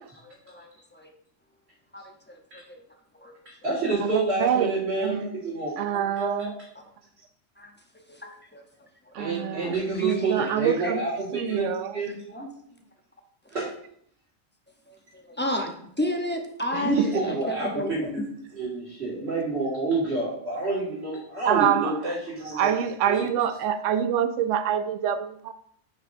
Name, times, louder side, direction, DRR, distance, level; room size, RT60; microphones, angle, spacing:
voice 1, 0.2-1.1 1.9-2.0 2.5-2.6 3.2-3.3 7.6-7.7 8.2-8.6 10.4-10.5 10.8-10.9 14.9-15.0 15.3-18.1, left 1 dB, 10° left, 0.7 m, -31 dB
voice 2, 3.5-6.5 9.2-11.7 11.9-12.5 13.5-13.7 16.8-18.2 18.5-22.7 23.1-23.3, right 3 dB, 55° right, 2.3 m, -28 dB
voice 3, 4.0-5.3 5.8-6.5 9.1-11.0 11.3-12.0 16.7-17.4 21.4-22.0 22.5-25.5, right 9 dB, 80° right, 0.9 m, -26 dB
9.8 x 5.8 x 2.7 m
omnidirectional pair, 1.3 m